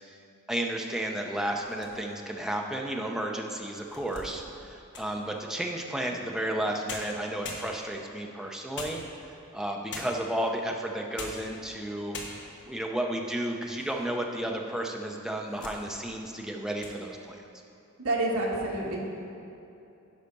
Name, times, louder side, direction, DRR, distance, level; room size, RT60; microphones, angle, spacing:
voice 1, 0.5-9.0 9.5-12.2 12.7-17.4, right 1 dB, ahead, 1 dB, 0.6 m, -32 dB
sound 1, 1.6-2.3 2.9-3.0 3.6-5.2 6.5-6.6 6.9-8.1 8.7-9.4 9.9-10.4 11.0-11.5 11.8-11.9 12.1-12.7 13.2-14.0 14.3-14.4 15.1-15.8 16.2-16.4 16.7-17.0, left 3 dB, 55° left, 1.1 m, -42 dB
voice 2, 18.0-19.0, right 2 dB, 70° right, -2 dB, 1.5 m, -28 dB
9.8 x 5.7 x 5.3 m, 2.8 s
head